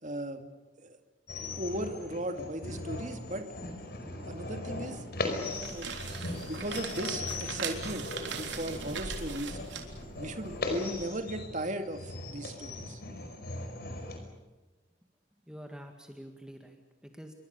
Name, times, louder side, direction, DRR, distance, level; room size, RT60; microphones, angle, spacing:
voice 1, 0.0-0.4 0.8-1.0 1.6-3.5 4.2-5.1 5.7-9.6 10.2-13.0, right 1 dB, 40° right, 7 dB, 2.3 m, -37 dB
sound 1, 1.3-14.2, left 2 dB, 50° left, 5.1 m, -39 dB
sound 2, 5.4-11.0, right 5 dB, 65° right, 3.7 m, -40 dB
voice 2, 15.5-17.3, equal, 5° right, 4 dB, 1.9 m, -47 dB
28.0 x 24.0 x 6.9 m, 1.2 s
head